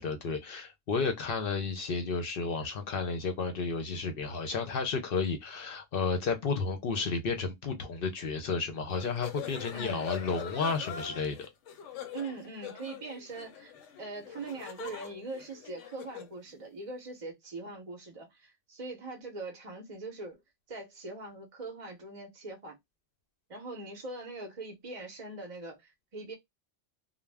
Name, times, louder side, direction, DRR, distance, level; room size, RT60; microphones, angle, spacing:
voice 1, 0.0-11.5, left 4 dB, 60° left, 0.7 m, -32 dB
sound 1, 8.9-16.4, left 8 dB, 90° left, 0.9 m, -43 dB
voice 2, 9.7-10.0 12.1-13.7 14.0-20.4 20.7-22.8 23.5-26.3, right 3 dB, 40° right, 0.6 m, -42 dB
2.3 x 2.1 x 3.2 m
omnidirectional pair, 1.2 m